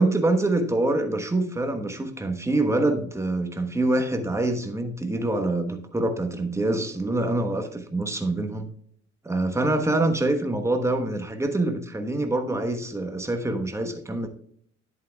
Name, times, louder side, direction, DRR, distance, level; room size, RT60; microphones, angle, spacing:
voice 1, 0.0-8.7 9.2-14.3, right 2 dB, 10° right, 5 dB, 1.2 m, -25 dB
10.5 x 8.4 x 2.4 m, 0.62 s
cardioid pair, 90°, 30 cm